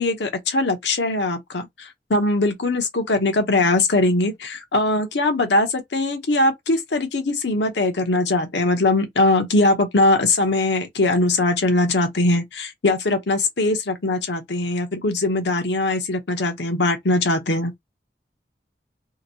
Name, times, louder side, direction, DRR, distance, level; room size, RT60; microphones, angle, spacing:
voice 1, 0.0-17.7, left 2 dB, 85° left, 0.8 m, -21 dB
2.9 x 2.6 x 2.7 m
head